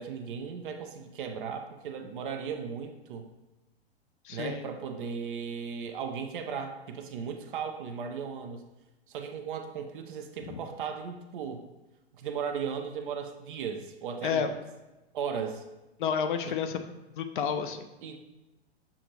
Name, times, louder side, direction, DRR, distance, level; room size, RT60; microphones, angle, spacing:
voice 1, 0.0-3.3 4.3-8.6 9.1-11.6 12.1-14.5 15.1-15.6 16.5-16.6 18.0-18.2, right 6 dB, 50° right, 6 dB, 0.6 m, -36 dB
voice 2, 4.2-4.6 10.5-10.6 14.2-14.5 16.0-16.8 17.2-17.9, left 7 dB, 50° left, 7 dB, 0.5 m, -30 dB
7.0 x 2.5 x 2.9 m, 1.0 s
figure-of-eight pair, 105°, 32 cm